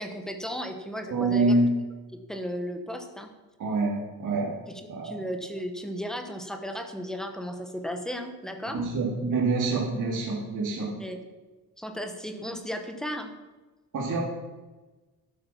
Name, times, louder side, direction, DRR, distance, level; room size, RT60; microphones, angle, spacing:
voice 1, 0.0-1.6 2.1-3.3 4.7-8.8 11.0-11.2 11.8-13.3, equal, ahead, 5 dB, 1.0 m, -35 dB
voice 2, 1.1-1.7 3.6-4.5 4.9-5.2 8.7-11.0 13.9-14.2, right 3 dB, 50° right, -3 dB, 2.2 m, -26 dB
12.0 x 8.2 x 5.7 m, 1.2 s
cardioid pair, 160°, 40 cm